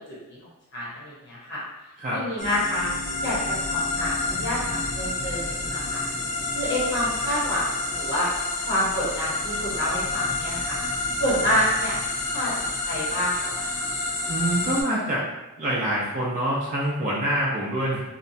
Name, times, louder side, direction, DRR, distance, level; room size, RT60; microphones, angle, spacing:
voice 1, 0.7-1.6 2.1-2.9 3.2-6.0 6.5-8.3 8.6-10.8 11.2-12.0 12.3-12.5 12.8-13.9, equal, 55° left, -7 dB, 0.8 m, -28 dB
sound 1, 2.4-14.8, left 2 dB, 35° left, 0.4 m, -29 dB
voice 2, 14.3-15.2 15.6-18.0, right 1 dB, 35° right, -7 dB, 0.4 m, -25 dB
2.8 x 2.1 x 2.6 m, 1.0 s
head